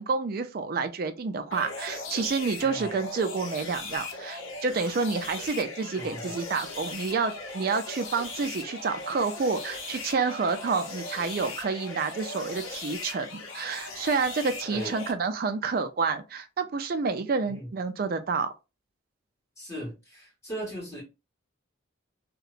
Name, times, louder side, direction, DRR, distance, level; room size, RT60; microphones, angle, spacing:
voice 1, 0.0-18.5, right 4 dB, 45° right, 0.3 m, -29 dB
sound 1, 1.5-15.1, left 3 dB, 90° left, 0.7 m, -39 dB
voice 2, 2.6-2.9 5.9-6.4 14.7-15.0 17.4-17.7 19.6-21.0, right 1 dB, 15° left, 1.5 m, -38 dB
2.8 x 2.1 x 2.4 m
head